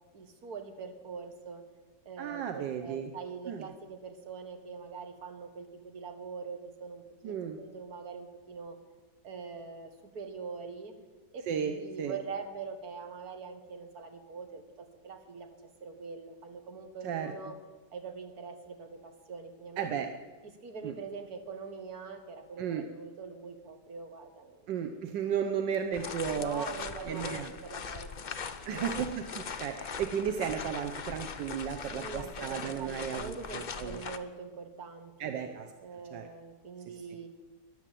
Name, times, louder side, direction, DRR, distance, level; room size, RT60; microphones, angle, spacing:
voice 1, 0.1-1.6 2.1-8.8 9.2-11.0 11.3-15.6 15.8-17.6 17.9-20.1 20.4-24.7 25.4-25.7 26.3-28.9 31.9-37.3, right 5 dB, 60° right, 6 dB, 2.0 m, -43 dB
voice 2, 2.2-3.1 3.5-3.6 7.2-7.6 11.5-12.2 17.0-17.3 19.8-20.1 20.8-20.9 22.6-22.8 24.7-26.7 27.0-27.5 28.7-34.0 35.2-35.7 36.1-36.3, right 8 dB, 80° right, 6 dB, 1.5 m, -34 dB
sound 1, 25.9-34.2, left 6 dB, 70° left, 0.4 m, -41 dB
13.5 x 11.0 x 7.6 m, 1.3 s
omnidirectional pair, 1.9 m